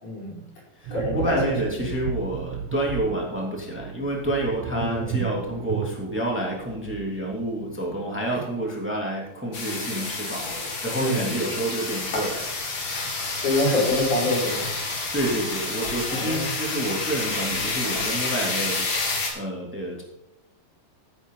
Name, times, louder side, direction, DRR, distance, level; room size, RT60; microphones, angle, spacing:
voice 1, 0.0-0.4 0.9-1.5 4.7-5.2 11.0-11.4 13.4-14.7 16.1-16.4, left 1 dB, 85° left, -5 dB, 6.7 m, -26 dB
voice 2, 0.7-12.5 15.1-20.0, right 1 dB, 5° right, -2 dB, 2.4 m, -29 dB
sound 1, 0.8-8.3 8.5-8.7, right 9 dB, 70° right, 1.8 m, -35 dB
sound 2, 9.5-19.3, left 3 dB, 65° left, 4.1 m, -29 dB
15.5 x 9.0 x 3.9 m, 0.93 s
omnidirectional pair, 3.4 m